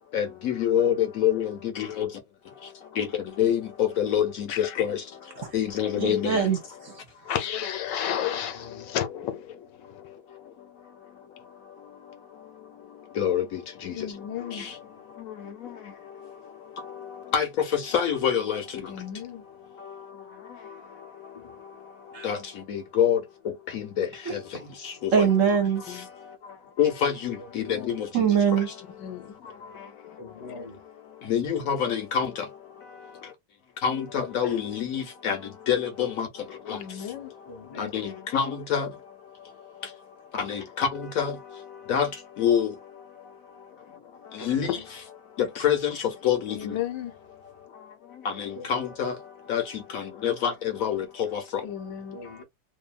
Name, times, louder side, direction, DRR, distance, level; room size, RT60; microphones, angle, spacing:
voice 1, 0.1-2.1 3.0-3.1 3.4-3.7 4.0-5.0 5.5-6.4 13.2-13.4 17.3-17.5 17.7-18.6 22.2-22.4 22.7-23.2 23.7-24.4 25.2-25.3 26.8-28.1 31.3-32.3 33.8-35.4 35.7-36.3 36.7-36.8 37.8-38.9 40.4-40.9 41.2-41.3 41.9-42.1 42.4-42.7 44.4-44.8 45.6-46.7 48.4-49.1 49.5-49.6 49.9-50.5 50.8-51.4, left 8 dB, 60° left, 1.0 m, -25 dB
voice 2, 4.5-4.8 5.9-6.3 7.3-9.4 13.9-14.7 18.9-19.4 25.4-25.5 25.9-26.1 29.0-29.4 36.7-37.3 46.5-47.1 51.6-52.2, left 10 dB, 80° left, 1.3 m, -33 dB
voice 3, 6.0-6.9 22.1-22.3 24.3-24.4 25.1-25.8 28.1-28.7, right 7 dB, 55° right, 1.1 m, -23 dB
voice 4, 8.3-8.9 21.3-21.5 27.4-28.1 30.2-30.8 34.1-34.6 37.5-37.9 44.4-44.8 48.6-48.9 52.1-52.4, left 3 dB, 40° left, 0.3 m, -42 dB
2.7 x 2.6 x 2.2 m
omnidirectional pair, 1.9 m